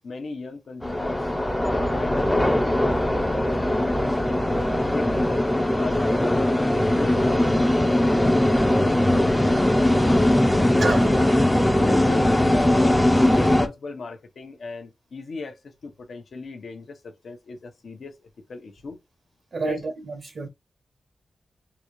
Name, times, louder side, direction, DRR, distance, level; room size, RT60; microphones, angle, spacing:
voice 1, 0.0-1.3 1.7-4.2 4.7-6.0 6.4-9.6 10.1-11.2 11.8-19.0 19.6-19.8, left 3 dB, 65° left, 0.8 m, -37 dB
sound 1, 0.8-13.7, left 1 dB, 10° left, 0.5 m, -20 dB
voice 2, 10.8-11.1 19.5-20.5, right 3 dB, 55° right, 0.7 m, -28 dB
3.9 x 2.3 x 3.0 m
wide cardioid pair, 115°, 0 cm